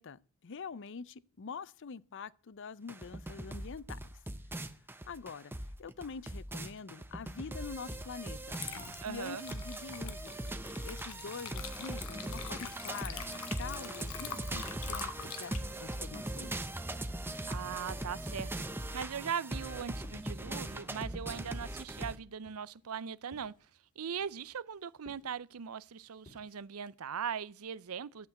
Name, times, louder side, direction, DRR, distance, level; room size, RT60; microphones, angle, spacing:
voice 1, 0.0-4.0 4.5-4.7 5.0-5.5 5.8-8.6 9.1-10.3 10.6-16.7, left 5 dB, 60° left, 0.5 m, -45 dB
sound 1, 2.9-22.2, right 1 dB, 10° right, 0.8 m, -40 dB
Water / Liquid, 7.9-8.1 8.5-17.0, left 7 dB, 85° left, 1.6 m, -45 dB
voice 2, 9.0-9.4 17.5-23.5 24.0-28.3, right 7 dB, 80° right, 0.6 m, -40 dB
sound 2, 14.1-16.5 16.8-17.9 18.4-21.2 21.5-26.9, left 1 dB, 35° left, 2.2 m, -60 dB
12.0 x 8.0 x 8.1 m
head